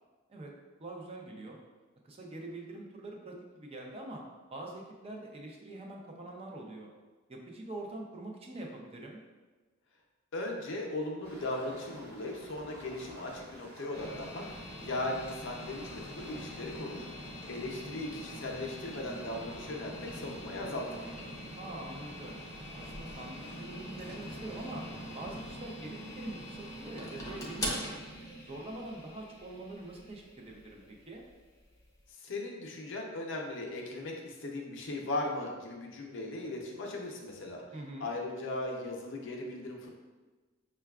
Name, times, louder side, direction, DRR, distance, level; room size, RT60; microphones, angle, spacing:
voice 1, 0.8-1.6 2.0-4.2 4.5-6.9 7.3-9.2 17.8-18.1 21.5-22.4 22.7-24.8 25.1-27.9 28.5-31.2 37.7-38.1, right 2 dB, 30° right, -1 dB, 0.5 m, -44 dB
voice 2, 10.3-21.1 32.2-37.6 38.0-39.9, left 2 dB, 60° left, 0 dB, 0.6 m, -38 dB
sound 1, 11.2-25.7, left 1 dB, 50° right, 0.9 m, -51 dB
sound 2, 13.9-32.0, equal, 15° left, 0.6 m, -44 dB
5.5 x 2.2 x 2.3 m, 1.3 s
head